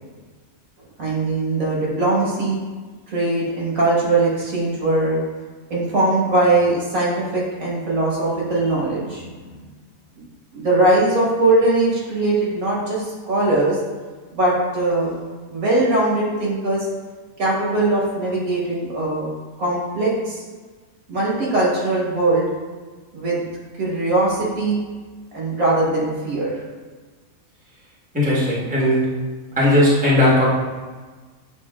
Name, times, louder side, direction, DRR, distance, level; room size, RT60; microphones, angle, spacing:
voice 1, 1.0-2.6 3.1-5.2 5.7-9.6 10.5-13.8 14.3-15.1 15.5-16.9 17.4-19.3 19.6-20.4 21.1-22.5 23.1-23.4 23.8-24.8 25.3-26.6, right 2 dB, 80° right, -5 dB, 1.7 m, -20 dB
voice 2, 28.1-29.1 29.6-30.5, left 1 dB, 5° right, -7 dB, 1.0 m, -17 dB
7.4 x 2.7 x 2.3 m, 1.4 s
omnidirectional pair, 1.4 m